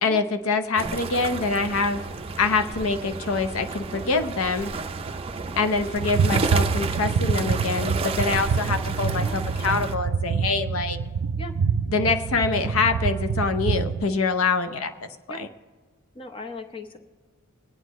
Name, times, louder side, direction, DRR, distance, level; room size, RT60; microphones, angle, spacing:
voice 1, 0.0-2.0 2.4-4.7 5.6-11.0 11.9-15.1 15.4-15.5, left 4 dB, 75° left, 9 dB, 0.7 m, -25 dB
sound 1, 0.8-10.0, right 4 dB, 25° right, 0.5 m, -32 dB
sound 2, 6.0-14.0, right 5 dB, 90° right, 0.4 m, -26 dB
voice 2, 16.1-17.0, left 2 dB, 25° left, 6 dB, 0.8 m, -38 dB
22.0 x 9.3 x 3.1 m, 1.4 s
head